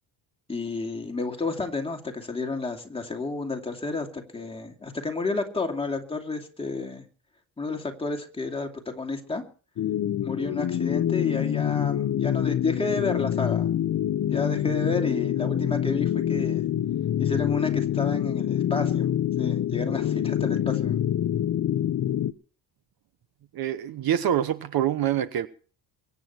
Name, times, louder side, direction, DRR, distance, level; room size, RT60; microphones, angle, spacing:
voice 1, 0.5-7.0 7.6-9.4 10.2-13.7 14.3-16.6 17.2-19.1 19.4-21.0, left 3 dB, 10° left, 2.6 m, -31 dB
sound 1, 9.8-22.3, left 11 dB, 40° left, 0.8 m, -26 dB
voice 2, 23.5-25.5, right 10 dB, 55° right, 1.1 m, -25 dB
23.5 x 9.8 x 4.5 m
cardioid pair, 155°, 45 cm